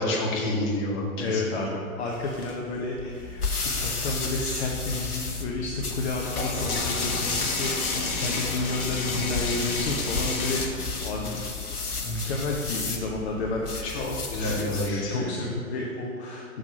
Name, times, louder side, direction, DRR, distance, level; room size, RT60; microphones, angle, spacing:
voice 1, 0.0-1.6 13.8-15.3, left 1 dB, 25° left, -4 dB, 2.0 m, -28 dB
voice 2, 1.2-10.6 11.0-11.4 12.0-14.0 14.4-16.6, left 3 dB, 45° left, -1 dB, 1.1 m, -31 dB
sound 1, 2.1-3.5 4.1-4.2 4.4-10.7, left 3 dB, 65° left, 1.5 m, -31 dB
sound 2, 3.1-15.0, left 4 dB, 85° left, 1.1 m, -33 dB
7.3 x 6.4 x 5.3 m, 2.3 s
figure-of-eight pair, 115°, 44 cm